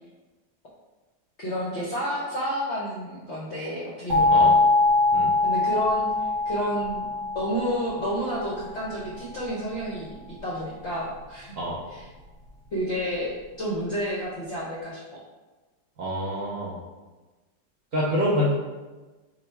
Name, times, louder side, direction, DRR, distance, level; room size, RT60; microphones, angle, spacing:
voice 1, 1.4-4.7 5.4-7.1 7.3-10.2 10.4-11.6 11.9-12.1 12.7-15.0, equal, 65° left, -6 dB, 0.6 m, -30 dB
sound 1, 4.1-8.8, left 3 dB, 50° right, 1.2 m, -23 dB
voice 2, 16.0-16.8 17.9-18.5, equal, 65° right, -5 dB, 0.8 m, -26 dB
3.8 x 2.1 x 4.3 m, 1.2 s
omnidirectional pair, 2.0 m